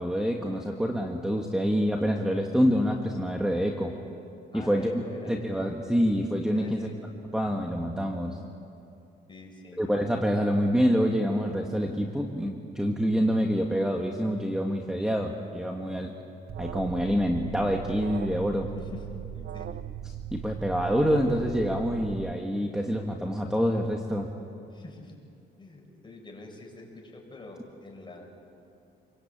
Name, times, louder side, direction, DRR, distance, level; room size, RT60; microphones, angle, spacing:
voice 1, 0.0-4.0 4.5-4.9 5.3-6.9 7.3-8.4 9.8-16.1 16.6-18.7 20.3-24.3, equal, 5° right, 2 dB, 2.0 m, -26 dB
voice 2, 4.5-5.4 6.5-7.1 9.3-9.8 18.7-19.0 19.3-19.8 24.7-25.1 25.6-28.3, left 2 dB, 25° left, 0 dB, 7.7 m, -45 dB
Alarm, 16.5-22.3, right 10 dB, 50° right, 0.6 m, -38 dB
28.5 x 23.0 x 8.9 m, 2.6 s
cardioid pair, 90°, 20 cm